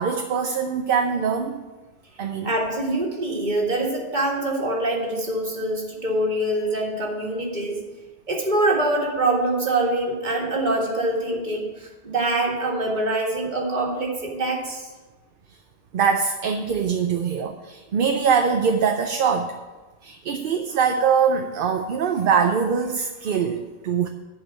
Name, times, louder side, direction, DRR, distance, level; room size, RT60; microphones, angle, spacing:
voice 1, 0.0-1.6 2.2-2.5 15.9-19.5 20.0-24.1, right 6 dB, 65° right, 6 dB, 0.8 m, -23 dB
voice 2, 2.4-7.8 8.3-14.9, right 2 dB, 50° right, -1 dB, 1.9 m, -24 dB
11.0 x 4.9 x 7.1 m, 1.2 s
omnidirectional pair, 1.0 m